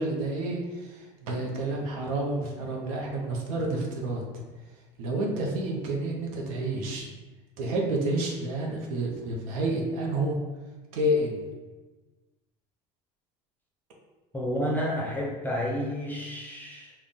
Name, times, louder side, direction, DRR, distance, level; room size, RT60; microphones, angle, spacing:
voice 1, 0.0-4.2 5.0-7.1 7.6-10.4 10.9-11.5, right 1 dB, 80° right, -1 dB, 0.7 m, -29 dB
voice 2, 14.3-16.9, equal, 10° left, -3 dB, 0.6 m, -30 dB
2.4 x 2.2 x 3.6 m, 1.2 s
supercardioid pair, 90°, 17 cm